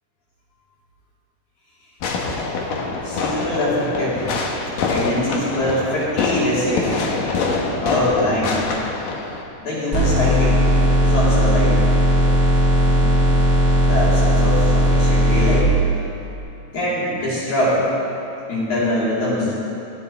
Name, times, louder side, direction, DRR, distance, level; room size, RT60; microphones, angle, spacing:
Fireworks, 2.0-9.4, left 3 dB, 85° left, 3.0 m, -25 dB
voice 1, 3.0-4.5 4.9-7.1 7.8-8.6 9.6-10.6 11.0-11.8 12.8-13.1 13.7-15.7 16.7-17.8 18.5-19.5, left 1 dB, 60° left, -9 dB, 5.7 m, -23 dB
sound 1, 9.9-15.6, equal, 10° left, 1.1 m, -16 dB
16.5 x 16.0 x 3.5 m, 2.8 s
omnidirectional pair, 3.8 m